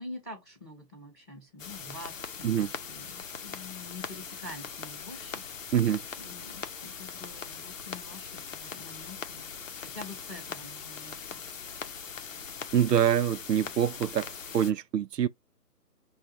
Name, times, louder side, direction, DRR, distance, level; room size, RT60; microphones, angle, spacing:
voice 1, 0.0-5.7 6.2-9.5 9.8-11.4, left 2 dB, 5° left, 0.7 m, -46 dB
sound 1, 1.6-14.7, left 6 dB, 55° left, 0.7 m, -41 dB
voice 2, 12.7-14.3 14.5-15.3, right 9 dB, 80° right, 0.6 m, -25 dB
5.2 x 2.3 x 2.8 m
figure-of-eight pair, 155°, 48 cm